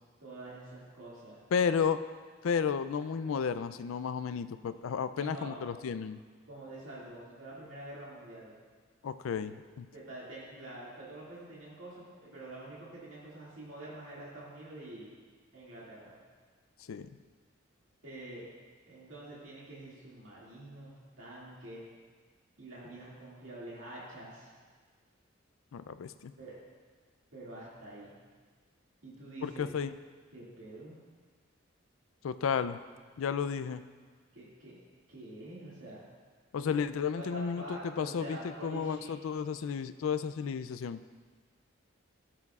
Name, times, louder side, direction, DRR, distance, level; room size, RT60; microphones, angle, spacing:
voice 1, 0.2-1.4 5.1-5.6 6.5-8.6 9.4-9.5 9.9-15.1 15.5-16.2 18.0-18.5 18.9-21.9 22.6-24.5 26.4-26.6 27.3-28.1 29.0-29.7 30.3-31.0 34.3-34.8 35.1-36.0 36.6-36.7 37.1-39.1, right 1 dB, 70° right, -7 dB, 2.2 m, -46 dB
voice 2, 1.5-2.0 2.4-6.2 9.0-9.9 16.9-17.1 25.7-26.3 29.4-30.0 32.2-32.8 33.2-33.8 36.5-37.6 38.0-38.4 38.6-41.0, left 6 dB, 80° left, 12 dB, 0.4 m, -32 dB
13.5 x 7.8 x 2.4 m, 1.5 s
head